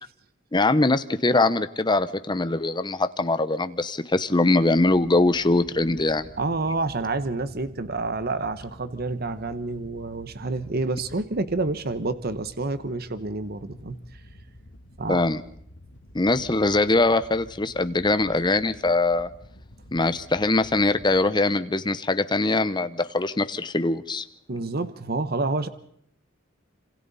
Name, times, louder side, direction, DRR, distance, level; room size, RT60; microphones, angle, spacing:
voice 1, 0.5-6.3 15.1-15.4 16.1-19.3 19.9-24.2, left 2 dB, 20° left, 12 dB, 0.9 m, -22 dB
Wind / Boat Water vehicle, 4.6-21.1, equal, 60° left, 2.8 m, -49 dB
voice 2, 6.4-14.0 15.0-15.2 24.5-25.7, right 3 dB, 50° right, 12 dB, 1.0 m, -28 dB
27.0 x 26.5 x 4.2 m, 0.69 s
head